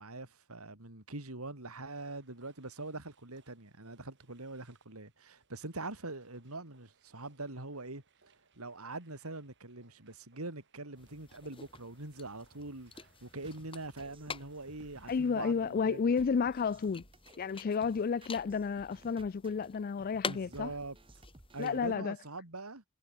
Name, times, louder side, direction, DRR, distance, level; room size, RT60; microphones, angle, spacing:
voice 1, 0.0-8.0 8.6-16.2 20.3-21.0 21.5-22.8, right 2 dB, 85° right, 3.5 m, -43 dB
sound 1, 2.1-17.0, right 5 dB, 55° right, 6.6 m, -70 dB
sound 2, 11.0-22.0, left 4 dB, 25° left, 4.2 m, -48 dB
sound 3, 13.4-22.1, right 1 dB, 25° right, 1.4 m, -58 dB
voice 2, 15.1-17.0 17.4-20.7 21.6-22.2, left 5 dB, 40° left, 0.4 m, -31 dB
head